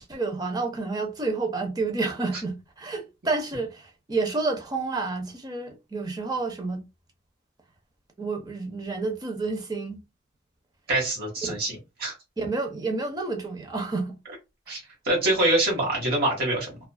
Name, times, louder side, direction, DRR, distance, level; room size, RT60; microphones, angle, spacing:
voice 1, 0.0-6.8 8.2-10.0 11.5-11.6 12.4-14.1, right 3 dB, 20° right, 0.5 m, -29 dB
voice 2, 10.9-12.1 14.7-16.8, right 1 dB, 50° right, 1.1 m, -25 dB
2.3 x 2.3 x 2.2 m
head